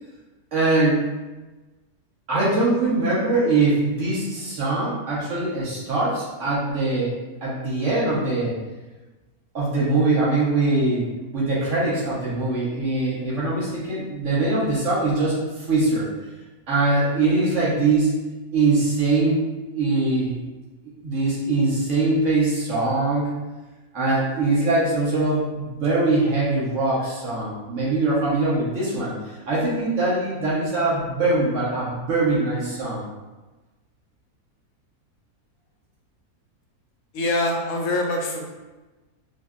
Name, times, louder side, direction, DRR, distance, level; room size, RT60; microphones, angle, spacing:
voice 1, 0.5-1.1 2.3-8.5 9.5-11.1 11.3-16.1 16.7-18.1 18.5-20.4 21.0-23.3 23.9-33.0, right 2 dB, 55° right, -7 dB, 1.4 m, -22 dB
voice 2, 37.1-38.4, left 2 dB, 70° left, 0 dB, 1.1 m, -24 dB
5.5 x 2.0 x 2.5 m, 1.2 s
omnidirectional pair, 1.6 m